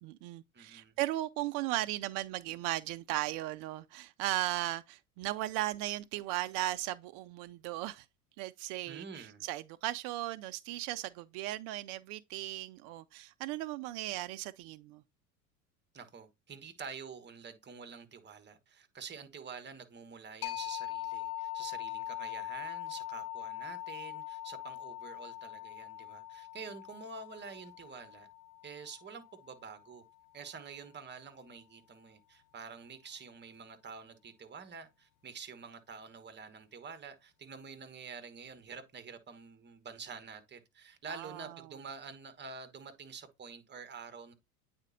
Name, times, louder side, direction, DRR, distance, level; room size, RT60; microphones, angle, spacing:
voice 1, 0.0-8.1 8.4-15.0 41.1-41.6, right 15 dB, 50° right, 0.5 m, -37 dB
voice 2, 0.5-1.0 8.8-9.5 15.9-28.3 28.6-30.0 30.3-44.3, right 5 dB, 25° right, 1.3 m, -48 dB
sound 1, 20.4-29.8, left 14 dB, 80° left, 0.8 m, -42 dB
8.8 x 4.2 x 2.7 m
hypercardioid pair, 75°, 43 cm